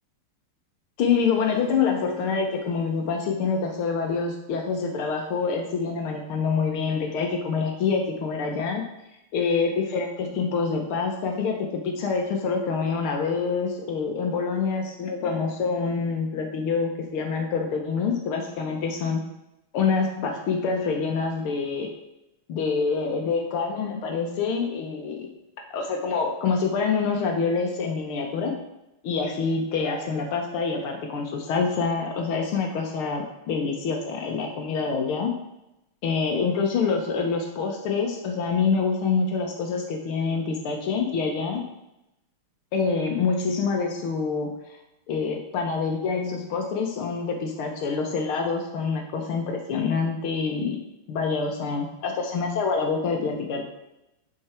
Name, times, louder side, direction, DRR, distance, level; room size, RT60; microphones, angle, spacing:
voice 1, 1.0-8.8 9.3-19.2 19.7-21.9 22.5-25.3 25.7-28.5 29.0-35.3 36.0-41.6 42.7-44.6 45.1-50.8 51.1-53.6, left 5 dB, 75° left, 2 dB, 1.9 m, -26 dB
12.0 x 4.9 x 4.4 m, 0.90 s
omnidirectional pair, 2.4 m